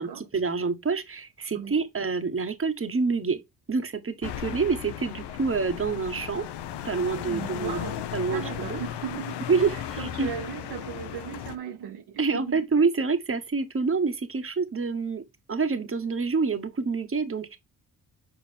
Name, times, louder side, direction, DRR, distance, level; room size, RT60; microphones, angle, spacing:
voice 1, 0.0-3.4 3.7-6.4 6.8-7.8 8.1-8.4 8.7-8.8 9.5-9.7 10.2-10.3 12.2-15.2 15.5-17.6, right 4 dB, 30° right, 1.6 m, -27 dB
sound 1, 4.2-11.6, left 10 dB, 75° left, 0.9 m, -36 dB
voice 2, 7.3-12.6, right 8 dB, 65° right, 1.5 m, -37 dB
6.9 x 4.7 x 3.6 m
hypercardioid pair, 45°, 41 cm